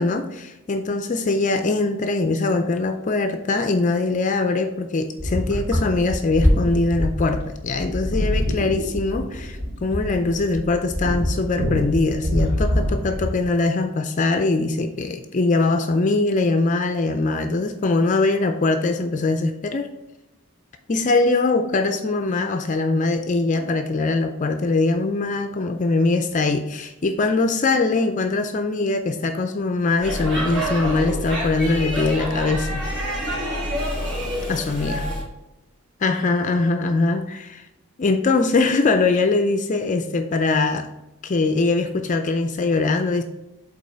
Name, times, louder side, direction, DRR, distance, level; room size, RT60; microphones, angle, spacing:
voice 1, 0.0-19.9 20.9-32.8 34.5-35.0 36.0-37.6 38.0-40.9 41.2-43.2, left 3 dB, 35° left, 7 dB, 0.4 m, -22 dB
sound 1, 5.2-13.4, equal, 75° right, 2.4 m, -24 dB
Speech / Shout / Subway metro underground, 30.0-35.2, equal, 55° right, 2.4 m, -27 dB
5.3 x 4.0 x 5.4 m, 0.94 s
head